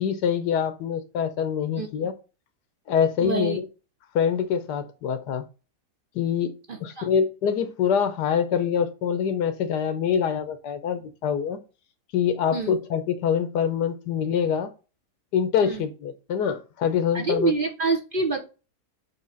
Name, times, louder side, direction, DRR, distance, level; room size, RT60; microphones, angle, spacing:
voice 1, 0.0-2.1 2.9-3.7 4.1-5.4 6.1-6.5 6.8-11.6 12.1-14.7 15.3-17.5, left 7 dB, 90° left, 10 dB, 1.5 m, -25 dB
voice 2, 3.2-3.6 6.7-7.1 12.5-12.8 15.6-15.8 17.1-18.4, right 4 dB, 45° right, 3 dB, 0.8 m, -26 dB
7.4 x 3.3 x 4.0 m, 0.33 s
omnidirectional pair, 1.7 m